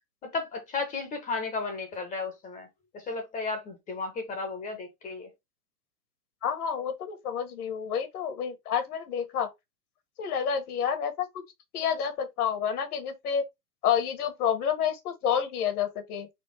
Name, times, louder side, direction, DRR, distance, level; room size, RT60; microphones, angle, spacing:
voice 1, 0.2-2.7 2.9-5.3, left 4 dB, 15° left, 0.9 m, -34 dB
voice 2, 6.4-9.5 10.2-11.3 11.7-13.4 13.8-16.3, left 8 dB, 60° left, 1.6 m, -29 dB
4.3 x 2.4 x 4.5 m
hypercardioid pair, 145°, 49 cm